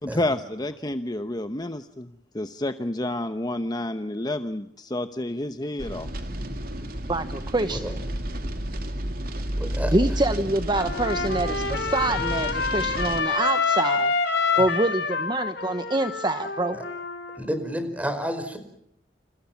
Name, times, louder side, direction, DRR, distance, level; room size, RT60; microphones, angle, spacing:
voice 1, 0.0-6.1, left 1 dB, 25° left, 9 dB, 1.0 m, -30 dB
sound 1, 5.8-13.2, right 1 dB, 55° right, 3.1 m, -31 dB
voice 2, 7.1-7.9 9.9-14.1 14.6-16.8, right 2 dB, 25° right, 9 dB, 1.0 m, -26 dB
voice 3, 9.6-9.9 14.6-14.7 16.7-16.8 17.3-18.6, equal, 10° right, 9 dB, 4.9 m, -30 dB
Trumpet, 10.7-17.4, left 4 dB, 70° left, 4.6 m, -27 dB
29.5 x 28.5 x 6.0 m, 0.73 s
head